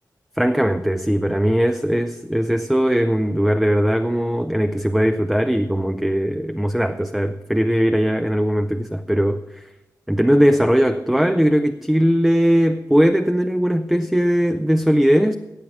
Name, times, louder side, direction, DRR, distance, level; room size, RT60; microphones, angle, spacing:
voice 1, 0.4-9.7 10.1-15.4, equal, 5° right, 8 dB, 0.4 m, -19 dB
15.5 x 8.6 x 6.0 m, 1.0 s
wide cardioid pair, 165°, 7 cm